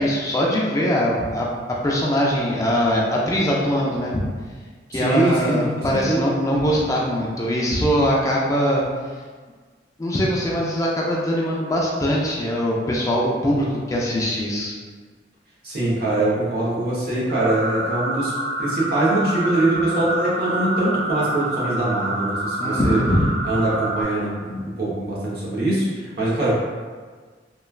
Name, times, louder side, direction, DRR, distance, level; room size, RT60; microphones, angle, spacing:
voice 1, 0.0-4.2 4.9-8.8 10.0-14.7 22.6-23.3, equal, 20° left, -3 dB, 0.3 m, -22 dB
voice 2, 4.9-6.3 15.6-18.3 18.6-23.0 23.4-25.8 26.2-26.5, right 2 dB, 60° right, -7 dB, 0.9 m, -23 dB
sound 1, 17.3-24.0, right 2 dB, 90° right, 1.3 m, -27 dB
3.0 x 2.2 x 2.3 m, 1.5 s
head